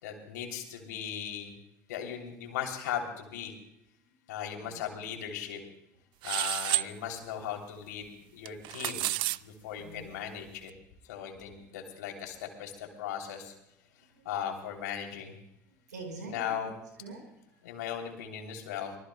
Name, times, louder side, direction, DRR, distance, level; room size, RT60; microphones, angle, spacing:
voice 1, 0.0-1.5 1.9-3.5 4.3-5.6 6.2-9.1 9.4-10.7 11.1-13.5 14.2-15.3 16.3-16.8 17.6-19.0, left 9 dB, 80° left, 3 dB, 3.0 m, -38 dB
voice 2, 4.2-5.0 9.7-10.1 11.1-11.6 12.8-13.1 14.0-14.4 15.6-17.8, right 3 dB, 90° right, 3 dB, 4.5 m, -48 dB
sound 1, 6.2-6.9 8.4-9.4, right 18 dB, 60° right, 0.4 m, -30 dB
24.5 x 20.0 x 2.2 m, 0.83 s
hypercardioid pair, 65°, 9 cm